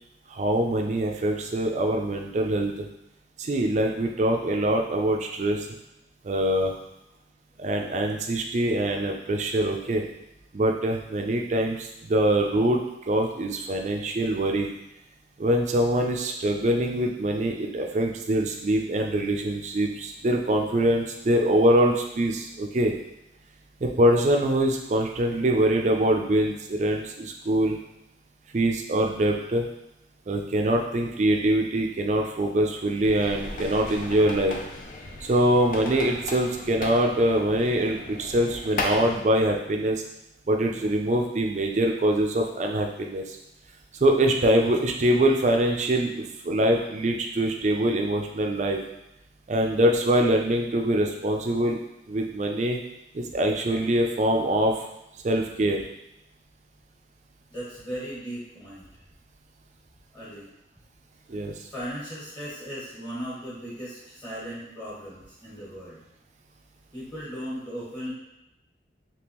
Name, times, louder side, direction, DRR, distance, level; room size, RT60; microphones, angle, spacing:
voice 1, 0.3-2.9 3.4-5.7 6.2-6.7 7.6-10.0 10.5-14.7 15.4-22.9 23.8-27.8 28.5-29.6 30.3-34.5 35.2-40.0 40.5-43.4 44.0-48.8 49.5-51.8 52.1-52.8 53.1-54.9 55.2-55.9 61.3-61.5, right 1 dB, 40° right, 2 dB, 0.4 m, -24 dB
sound 1, 33.0-39.2, left 2 dB, 45° left, 0.4 m, -36 dB
voice 2, 57.5-58.8 60.1-60.5 61.7-66.0 66.9-68.1, equal, 25° left, -8 dB, 1.5 m, -37 dB
3.5 x 2.9 x 2.9 m, 0.87 s
head